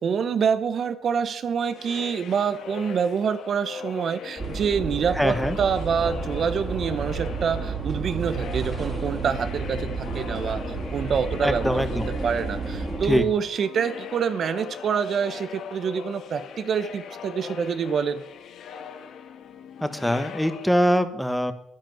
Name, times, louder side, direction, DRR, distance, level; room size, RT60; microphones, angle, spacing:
voice 1, 0.0-11.8 12.2-18.2, right 7 dB, 55° right, 12 dB, 0.9 m, -26 dB
sound 1, 1.6-21.0, left 7 dB, 75° left, 1.3 m, -41 dB
sound 2, 4.4-13.2, right 3 dB, 30° right, 2.6 m, -31 dB
voice 2, 5.1-5.6 11.4-12.1 13.1-13.2 19.8-21.5, equal, 5° left, 10 dB, 1.4 m, -23 dB
10.5 x 10.5 x 7.8 m, 0.77 s
cardioid pair, 90°, 0 cm